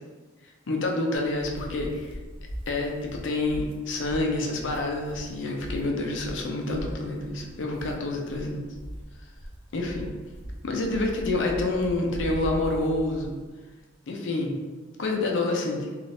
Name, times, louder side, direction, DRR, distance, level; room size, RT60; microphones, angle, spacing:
voice 1, 0.7-2.1 2.7-8.6 9.7-10.1 10.6-13.4 14.1-14.6 15.0-15.9, left 2 dB, 85° left, 1 dB, 0.5 m, -28 dB
sound 1, 1.1-13.5, equal, 30° right, 0.4 m, -40 dB
3.2 x 2.5 x 2.6 m, 1.3 s
head